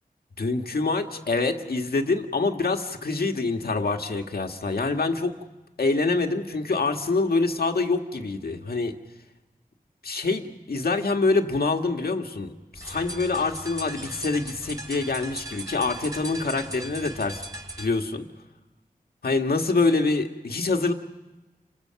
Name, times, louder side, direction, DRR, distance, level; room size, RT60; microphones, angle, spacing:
voice 1, 0.4-5.4 5.8-8.9 10.0-17.4 17.8-18.2 19.2-20.9, left 3 dB, 80° left, 4 dB, 1.7 m, -25 dB
sound 1, 12.7-17.9, right 1 dB, 20° right, 5.6 m, -38 dB
30.0 x 24.5 x 5.8 m, 1.1 s
wide cardioid pair, 60°, 16 cm